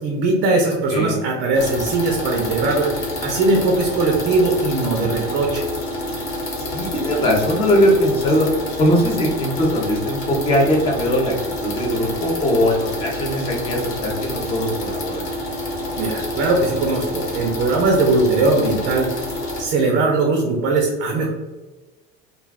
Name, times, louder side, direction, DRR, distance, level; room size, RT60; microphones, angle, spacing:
voice 1, 0.0-5.6 16.0-19.1 19.6-21.3, right 3 dB, 35° right, 0 dB, 0.4 m, -20 dB
sound 1, 1.5-19.6, left 1 dB, 45° left, 0.8 m, -28 dB
voice 2, 6.6-8.5 8.8-11.3 11.6-15.2, equal, 20° left, -1 dB, 0.5 m, -20 dB
2.3 x 2.3 x 3.3 m, 1.2 s
cardioid pair, 160°, 30 cm